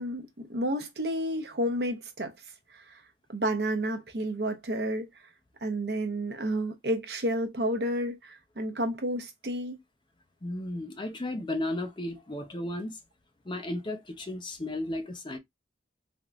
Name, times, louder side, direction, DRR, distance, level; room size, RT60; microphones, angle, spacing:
voice 1, 0.0-2.3 2.7-3.0 3.3-5.1 5.6-9.8, right 1 dB, 65° right, 0.8 m, -31 dB
voice 2, 10.4-13.0 13.5-15.4, left 1 dB, 25° left, 0.5 m, -34 dB
3.4 x 2.9 x 2.4 m
head